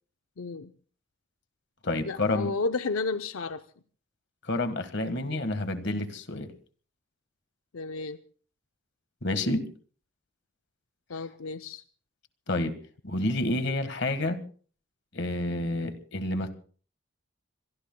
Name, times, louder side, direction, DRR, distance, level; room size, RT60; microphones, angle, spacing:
voice 1, 0.4-0.7 2.0-3.6 7.7-8.2 11.1-11.8, left 3 dB, 90° left, 9 dB, 0.6 m, -32 dB
voice 2, 1.8-2.5 4.4-6.5 9.2-9.6 12.5-12.7 13.0-14.4 15.1-16.5, left 2 dB, 55° left, 10 dB, 1.5 m, -29 dB
25.5 x 22.5 x 2.2 m, 0.43 s
head